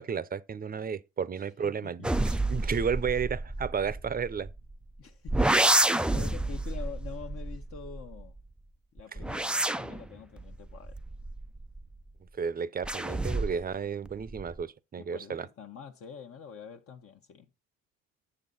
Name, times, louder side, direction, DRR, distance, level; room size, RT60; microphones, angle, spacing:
voice 1, 0.0-4.5 12.4-15.5, right 6 dB, 30° right, 0.7 m, -32 dB
voice 2, 1.4-2.1 5.0-8.3 8.9-11.0 14.9-17.5, left 6 dB, 50° left, 1.0 m, -46 dB
sound 1, 2.0-4.8 5.3-8.4 9.0-12.0 12.8-13.7 14.1-14.6, right 1 dB, 5° right, 0.4 m, -29 dB
8.9 x 6.8 x 3.9 m
cardioid pair, 85°, 29 cm